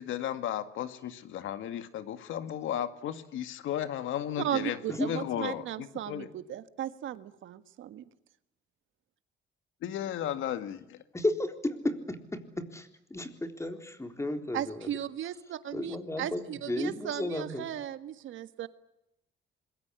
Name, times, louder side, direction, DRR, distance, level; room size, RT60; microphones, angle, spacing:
voice 1, 0.0-4.8 5.0-6.3 9.8-11.0, left 10 dB, 85° left, 10 dB, 2.0 m, -34 dB
voice 2, 4.4-8.0 14.5-18.7, right 11 dB, 75° right, 11 dB, 1.7 m, -36 dB
voice 3, 11.1-14.9 15.7-17.7, left 1 dB, 15° left, 6 dB, 3.8 m, -33 dB
26.0 x 22.0 x 8.3 m, 0.85 s
cardioid pair, 90°, 20 cm